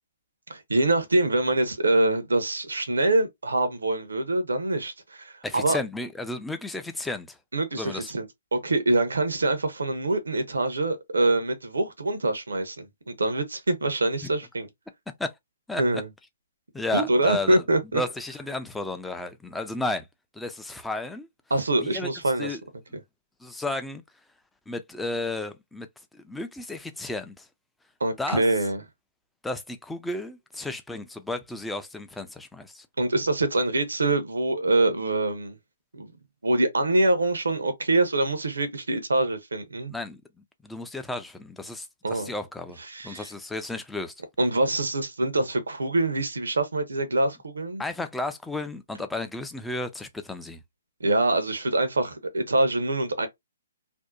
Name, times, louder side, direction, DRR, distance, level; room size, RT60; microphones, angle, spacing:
voice 1, 0.5-5.8 7.5-8.3 8.5-14.7 15.8-16.1 16.9-18.0 21.5-22.6 28.0-28.8 33.0-35.6 35.9-36.1 36.4-39.9 42.0-42.3 42.9-43.3 44.4-47.8 51.0-53.3, right 2 dB, 90° right, 0.7 m, -25 dB
voice 2, 5.4-7.4 7.8-8.1 14.2-14.3 15.2-15.3 15.7-16.0 16.7-17.6 17.9-20.1 20.3-21.3 21.8-22.1 22.4-22.6 23.4-24.0 24.7-25.9 26.1-27.5 28.2-28.4 29.4-32.9 39.9-40.2 40.6-42.8 43.0-44.1 47.8-50.6, left 2 dB, 5° left, 0.3 m, -33 dB
2.6 x 2.1 x 2.2 m
hypercardioid pair, 140°, 0 cm